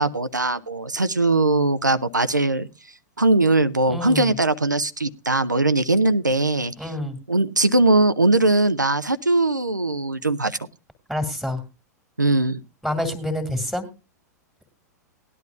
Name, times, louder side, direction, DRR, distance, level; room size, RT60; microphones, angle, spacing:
voice 1, 0.0-2.7 3.2-6.9 7.3-10.6 12.2-12.6, right 2 dB, 90° right, 11 dB, 0.6 m, -20 dB
voice 2, 3.9-4.3 6.8-7.2 11.1-11.6 12.8-13.9, left 1 dB, ahead, 7 dB, 2.1 m, -27 dB
18.5 x 11.0 x 2.4 m, 0.29 s
figure-of-eight pair, 95°, 10 cm